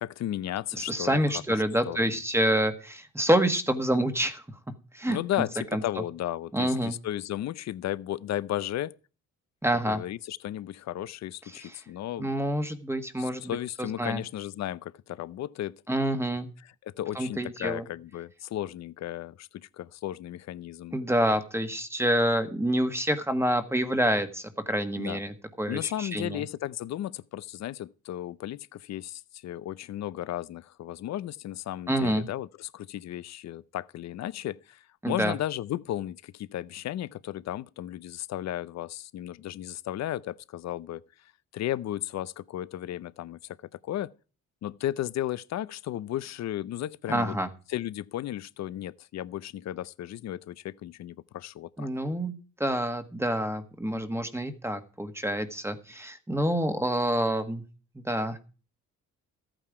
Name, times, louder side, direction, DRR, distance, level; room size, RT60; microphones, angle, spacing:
voice 1, 0.0-1.2 1.9-2.2 5.1-9.0 9.8-12.3 13.2-15.8 16.6-21.0 25.0-25.2 25.7-41.0 41.5-43.6 43.8-44.1 44.6-47.4 47.7-51.9, left 13 dB, 65° left, 0.6 m, -34 dB
voice 2, 0.7-4.4 4.9-5.2 5.7-5.8 6.5-6.9 9.6-10.0 11.6-11.7 12.2-14.2 15.9-16.5 17.1-17.8 20.9-26.4 31.9-32.2 35.0-35.3 47.1-47.5 51.8-52.3 52.6-57.6 57.9-58.4, right 1 dB, 10° right, 1.4 m, -27 dB
14.0 x 9.0 x 4.8 m
cardioid pair, 90°, 30 cm